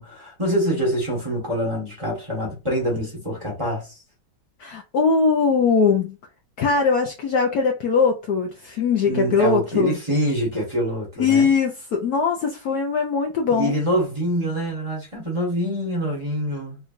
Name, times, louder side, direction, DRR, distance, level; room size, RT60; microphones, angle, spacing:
voice 1, 0.0-4.0 9.1-11.5 13.5-16.8, equal, 15° right, 1.4 m, -25 dB
voice 2, 4.6-6.2 6.6-10.0 11.2-13.7, left 5 dB, 65° left, 1.0 m, -21 dB
3.6 x 3.2 x 2.5 m
omnidirectional pair, 2.1 m